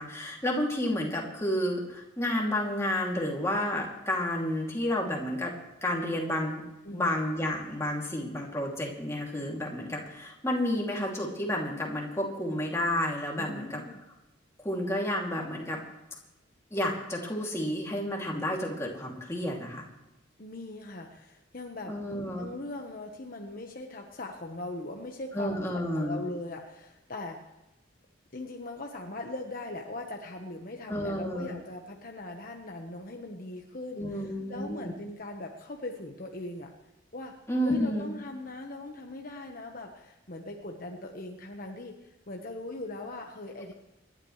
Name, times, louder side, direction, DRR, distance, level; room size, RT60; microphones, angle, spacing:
voice 1, 0.0-5.5 5.8-6.6 6.9-13.8 14.6-15.8 16.7-19.8 21.9-22.5 25.3-26.2 30.9-31.5 34.0-34.9 37.5-38.1, left 1 dB, 15° left, -2 dB, 2.7 m, -31 dB
voice 2, 13.4-14.0 20.4-21.9 22.4-27.4 28.3-36.7 37.1-37.3 37.6-43.7, left 2 dB, 45° left, 2 dB, 1.3 m, -40 dB
27.5 x 11.5 x 3.3 m, 0.98 s
head